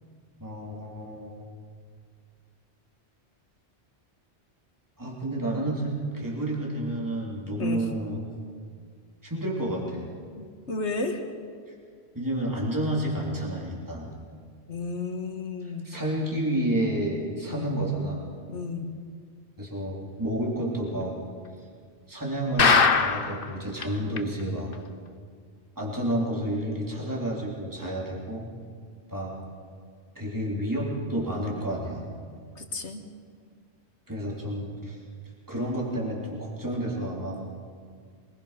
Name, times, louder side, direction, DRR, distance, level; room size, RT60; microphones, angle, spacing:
voice 1, 0.4-1.3 5.0-8.2 9.2-10.1 11.7-11.8 12.2-14.1 15.8-18.3 19.6-21.2 22.1-24.7 25.8-28.4 29.1-29.3 30.2-32.1 34.1-35.0 35.5-37.4, right 1 dB, 15° right, -3 dB, 3.5 m, -30 dB
voice 2, 10.4-11.2 14.7-15.9 17.5-17.8 18.5-18.9 32.6-33.1, left 3 dB, 85° left, 5 dB, 2.0 m, -33 dB
sound 1, 22.6-23.4 23.8-23.9 24.2-24.3 24.7-24.8, left 5 dB, 55° left, 1.1 m, -20 dB
24.0 x 20.0 x 5.9 m, 2.1 s
omnidirectional pair, 1.1 m